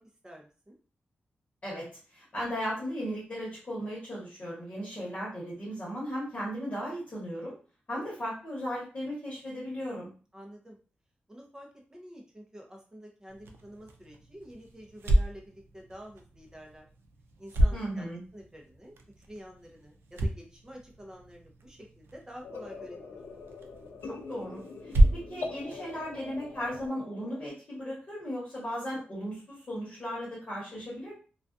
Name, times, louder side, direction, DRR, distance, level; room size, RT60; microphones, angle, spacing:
voice 1, 0.2-0.8 10.3-10.8 11.3-16.9 17.4-23.0, equal, 15° right, 0 dB, 0.6 m, -48 dB
voice 2, 2.1-7.5 7.9-10.1 17.7-18.2 24.1-31.2, equal, 35° left, -5 dB, 1.1 m, -36 dB
sound 1, 13.3-26.9, right 1 dB, 90° right, 0.4 m, -32 dB
sound 2, 22.4-27.5, left 3 dB, 90° left, 0.4 m, -43 dB
2.3 x 2.3 x 2.5 m, 0.37 s
wide cardioid pair, 140°, 4 cm